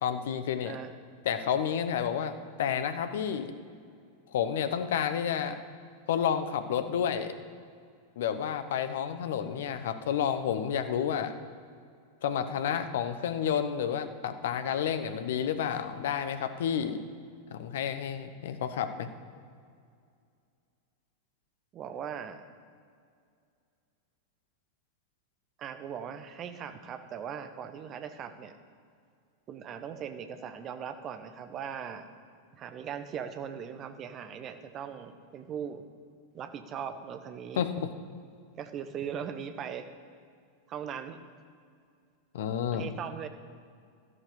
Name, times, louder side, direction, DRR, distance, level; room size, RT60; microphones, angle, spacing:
voice 1, 0.0-0.8 1.2-2.3 2.6-3.5 4.3-5.6 6.1-7.3 8.2-11.3 12.2-17.0 17.5-19.1 37.6-37.9 42.3-42.9, left 8 dB, 55° left, 10 dB, 0.9 m, -30 dB
voice 2, 21.7-22.4 25.6-28.6 29.5-32.1 32.6-35.8 36.3-37.7 38.6-39.9 40.7-41.2 42.7-43.3, right 8 dB, 30° right, 9 dB, 1.0 m, -39 dB
13.0 x 11.0 x 5.1 m, 2.3 s
figure-of-eight pair, 90°, 0 cm